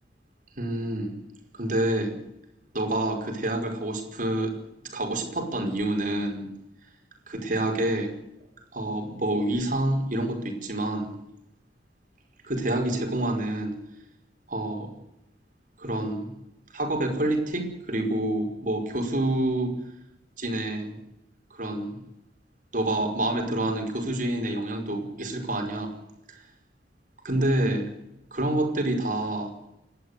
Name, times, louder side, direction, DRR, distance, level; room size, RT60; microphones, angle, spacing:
voice 1, 0.6-1.2 1.5-2.2 2.7-4.6 4.9-6.5 7.3-8.1 8.7-11.2 12.4-13.8 14.5-14.9 15.8-16.3 16.7-19.8 20.4-21.0 21.5-22.0 22.7-25.9 26.3-26.4 27.2-27.9 28.3-29.5, right 1 dB, 45° right, 4 dB, 5.2 m, -27 dB
29.0 x 12.0 x 8.2 m, 0.89 s
head